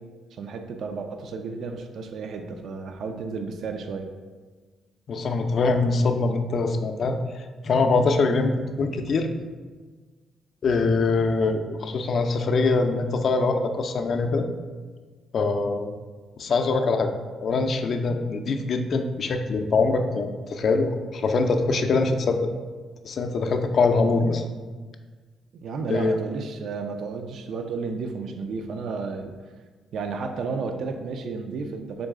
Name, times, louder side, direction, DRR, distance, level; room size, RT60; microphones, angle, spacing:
voice 1, 0.3-4.1 25.5-29.3 29.9-32.1, right 4 dB, 70° right, 5 dB, 0.3 m, -32 dB
voice 2, 5.1-8.5 8.8-9.3 10.6-14.5 15.3-16.0 16.4-17.1 17.4-22.5 23.0-24.4 25.9-26.2, left 3 dB, 55° left, 6 dB, 0.4 m, -23 dB
3.8 x 3.1 x 3.5 m, 1.4 s
cardioid pair, 90°, 0 cm